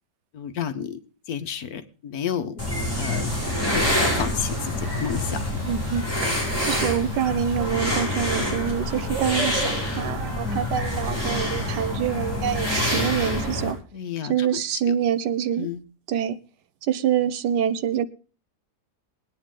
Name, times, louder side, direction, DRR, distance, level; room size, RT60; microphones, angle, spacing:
voice 1, 0.3-1.0 1.3-2.6 2.9-3.3 3.6-5.6 10.4-10.7 13.9-14.6 14.9-15.0 15.6-15.8, left 8 dB, 65° left, 1.4 m, -31 dB
sound 1, 2.6-13.7, left 1 dB, 10° left, 7.1 m, -26 dB
voice 2, 5.7-13.8 14.3-15.7 16.1-16.4 16.8-18.1, right 9 dB, 85° right, 1.4 m, -26 dB
20.5 x 9.3 x 3.7 m
omnidirectional pair, 1.8 m